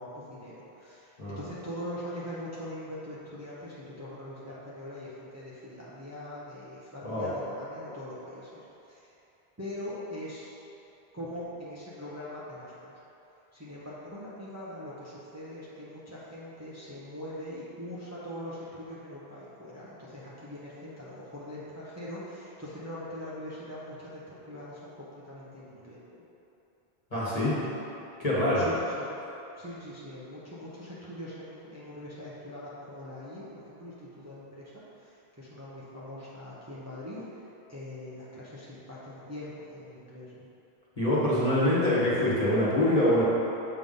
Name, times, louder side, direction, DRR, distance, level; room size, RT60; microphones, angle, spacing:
voice 1, 0.0-9.1 9.6-10.5 11.1-13.0 13.5-26.0 27.6-27.8 28.5-29.1 29.6-40.5, left 1 dB, 15° right, -9 dB, 0.9 m, -42 dB
voice 2, 27.1-27.6 28.2-28.7 41.0-43.2, left 1 dB, 35° left, -9 dB, 1.7 m, -25 dB
7.9 x 3.5 x 5.3 m, 3.0 s
omnidirectional pair, 1.1 m